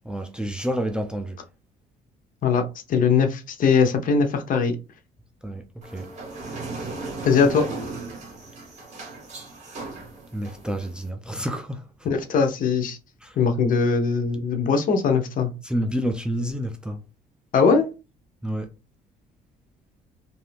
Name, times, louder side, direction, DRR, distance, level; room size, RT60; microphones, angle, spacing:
voice 1, 0.0-1.4 5.4-5.6 5.9-6.1 10.3-11.8 13.2-13.4 15.6-17.0 18.4-18.7, equal, 5° right, 0.5 m, -29 dB
voice 2, 2.9-4.7 7.2-7.6 12.0-13.0 13.4-15.5 17.5-17.9, left 5 dB, 55° left, 0.7 m, -20 dB
sound 1, 5.8-11.1, right 3 dB, 45° right, 1.6 m, -36 dB
2.7 x 2.6 x 3.3 m
cardioid pair, 110°, 17 cm